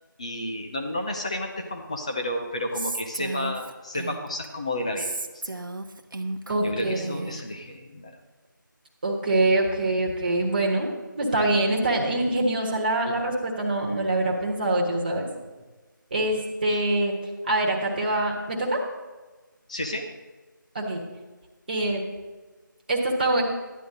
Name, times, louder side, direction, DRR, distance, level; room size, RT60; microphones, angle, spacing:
voice 1, 0.2-5.1 6.6-8.2 16.7-16.8 19.7-20.1, left 1 dB, 20° left, 2 dB, 0.6 m, -31 dB
Female speech woman speaking, 2.7-4.5 5.0-7.5, right 2 dB, 70° right, 1.0 m, -34 dB
voice 2, 6.5-7.2 9.0-10.9 11.2-15.3 16.1-17.1 17.5-18.8 20.7-21.0 21.7-22.0 22.9-23.4, right 2 dB, 25° right, -1 dB, 1.5 m, -24 dB
12.5 x 10.0 x 3.9 m, 1.3 s
figure-of-eight pair, 170°, 11 cm